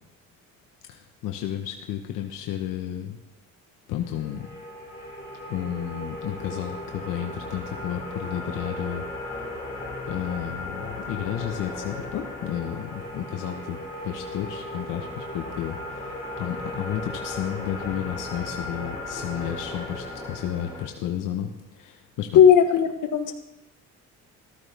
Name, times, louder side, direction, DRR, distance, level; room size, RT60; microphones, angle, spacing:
voice 1, 0.9-3.2 3.9-4.6 5.5-9.4 10.1-13.8 14.0-22.4, left 10 dB, 90° left, 3 dB, 1.2 m, -32 dB
sound 1, 4.1-20.9, left 2 dB, 15° left, 5.8 m, -36 dB
voice 2, 22.3-23.3, left 8 dB, 70° left, 5 dB, 1.5 m, -16 dB
14.5 x 13.5 x 3.5 m, 0.92 s
cardioid pair, 115°, 31 cm